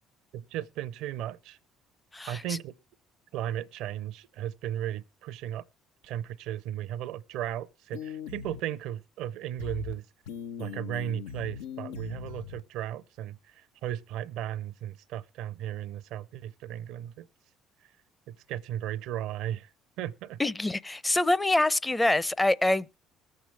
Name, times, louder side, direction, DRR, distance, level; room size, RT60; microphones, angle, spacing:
voice 1, 0.3-1.6 2.3-2.7 3.3-5.6 6.0-10.0 10.6-17.3 18.3-19.7 20.0-20.4, right 11 dB, 70° right, 0.6 m, -35 dB
voice 2, 2.1-2.6 20.4-23.0, left 2 dB, 15° left, 0.6 m, -25 dB
sound 1, 7.9-8.6 9.6-9.9 10.3-12.6, left 9 dB, 85° left, 0.6 m, -40 dB
20.5 x 7.7 x 3.3 m
hypercardioid pair, 65°, 0 cm